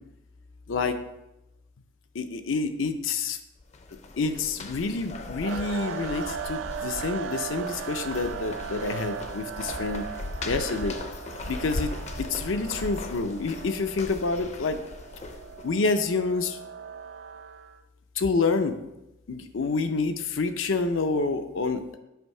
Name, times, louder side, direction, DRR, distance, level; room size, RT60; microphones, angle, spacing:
voice 1, 2.1-3.4 4.2-10.1 10.4-11.0 11.5-11.9 12.2-14.8 15.6-16.6 18.2-18.8 19.3-22.0, left 4 dB, 85° left, 8 dB, 0.6 m, -28 dB
sound 1, 3.6-15.7, left 2 dB, 35° left, 0.5 m, -38 dB
sound 2, 5.4-17.8, right 7 dB, 70° right, 0.3 m, -38 dB
7.7 x 2.7 x 5.4 m, 0.92 s
head